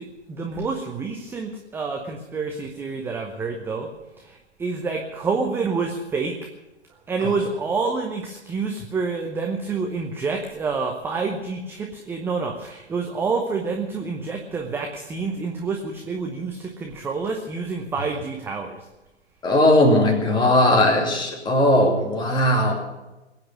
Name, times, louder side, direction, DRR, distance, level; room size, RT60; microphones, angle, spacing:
voice 1, 0.0-3.9 4.2-6.4 7.1-18.9, right 4 dB, 5° right, 2 dB, 0.8 m, -28 dB
voice 2, 19.4-22.7, left 1 dB, 15° left, 1 dB, 2.5 m, -18 dB
21.0 x 8.8 x 7.3 m, 1.0 s
figure-of-eight pair, 115°, 34 cm